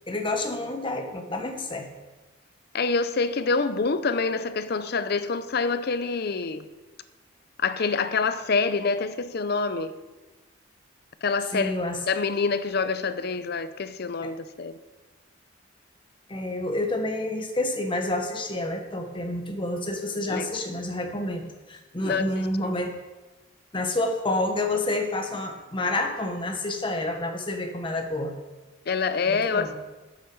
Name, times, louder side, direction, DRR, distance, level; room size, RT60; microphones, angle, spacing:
voice 1, 0.1-1.9 11.5-12.0 14.2-14.3 16.3-21.4 21.7-22.9 23.7-28.3 29.3-29.7, left 2 dB, 25° left, 1.2 m, -29 dB
voice 2, 2.7-6.7 7.6-9.9 11.2-11.7 12.1-14.8 20.3-20.5 22.0-22.3 28.9-29.7, left 4 dB, 55° left, 0.6 m, -26 dB
9.1 x 8.4 x 6.1 m
head